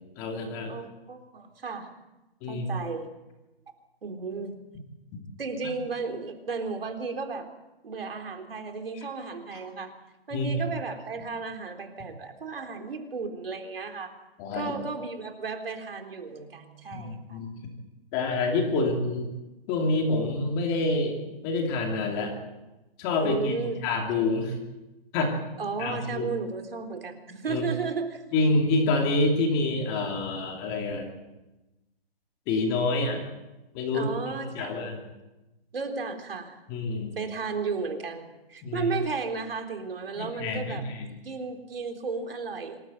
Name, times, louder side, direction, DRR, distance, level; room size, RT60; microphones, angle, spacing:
voice 1, 0.2-0.8 2.4-2.7 10.3-10.6 14.4-14.7 16.9-17.6 18.1-19.3 19.7-21.2 21.4-22.3 23.0-23.5 23.8-24.6 25.1-25.3 25.8-26.3 27.5-27.6 28.3-31.1 32.5-33.2 33.7-35.0 36.7-37.2 38.6-38.9 40.2-41.2, left 2 dB, 15° left, 2 dB, 2.6 m, -27 dB
voice 2, 0.7-1.9 2.5-3.1 4.0-4.5 5.4-7.5 7.8-9.9 10.3-14.1 14.5-17.4 23.2-23.8 25.6-28.2 33.9-34.8 35.7-36.6 37.2-40.9 41.2-42.8, right 4 dB, 65° right, 5 dB, 3.8 m, -34 dB
26.0 x 14.0 x 9.2 m, 1.0 s
hypercardioid pair, 170°, 31 cm